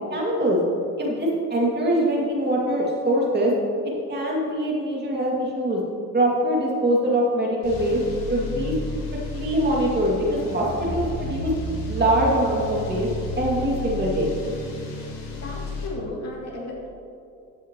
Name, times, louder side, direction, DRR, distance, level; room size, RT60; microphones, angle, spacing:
voice 1, 0.1-0.6 1.0-3.5 4.1-5.8 6.1-8.0 8.3-8.7 9.3-11.5 11.9-13.1 13.4-14.3, right 1 dB, 30° right, -3 dB, 2.2 m, -23 dB
sound 1, 7.6-15.9, left 2 dB, 70° left, 2.4 m, -32 dB
voice 2, 15.3-16.9, left 2 dB, 45° left, -3 dB, 2.5 m, -34 dB
14.0 x 8.0 x 3.0 m, 2.5 s
cardioid pair, 100°, 35 cm